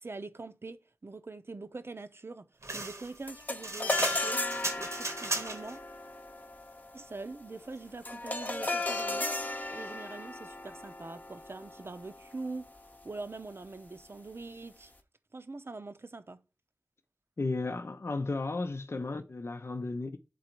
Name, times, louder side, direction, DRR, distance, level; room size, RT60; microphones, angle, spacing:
voice 1, 0.0-4.4 4.8-5.8 6.9-9.3 9.7-12.7 13.0-14.9 15.3-16.4, right 3 dB, 55° right, 0.6 m, -43 dB
sound 1, 2.6-5.8, right 2 dB, 85° right, 1.1 m, -36 dB
sound 2, 3.3-12.8, left 2 dB, 35° left, 0.8 m, -36 dB
voice 2, 17.4-20.2, left 3 dB, 65° left, 0.6 m, -34 dB
8.4 x 3.9 x 4.5 m
wide cardioid pair, 45°, 5 cm